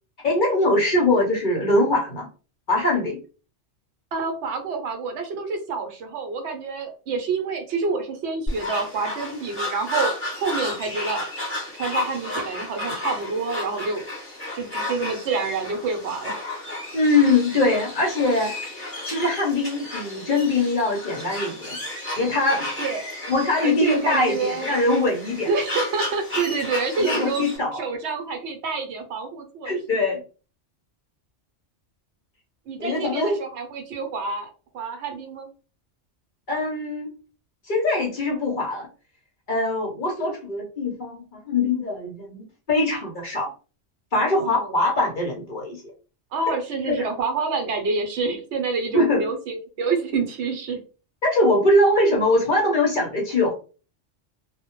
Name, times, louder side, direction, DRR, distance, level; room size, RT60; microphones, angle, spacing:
voice 1, 0.2-2.3 2.7-3.2 16.9-18.5 19.1-21.8 22.2-22.7 23.3-25.5 27.0-27.8 29.6-30.2 32.8-33.4 36.5-37.1 37.6-38.9 39.5-43.5 44.1-45.8 46.9-47.0 48.9-49.2 51.2-53.5, left 2 dB, 55° left, -1 dB, 0.6 m, -22 dB
voice 2, 4.1-10.1 10.4-11.3 11.8-14.1 14.5-16.3 22.8-23.1 23.6-24.7 25.5-27.5 27.7-30.0 32.7-35.5 44.3-44.7 46.3-50.8, right 4 dB, 70° right, 4 dB, 0.8 m, -28 dB
sound 1, 8.5-27.6, left 1 dB, 10° left, 0.9 m, -32 dB
2.1 x 2.1 x 2.9 m, 0.36 s
omnidirectional pair, 1.2 m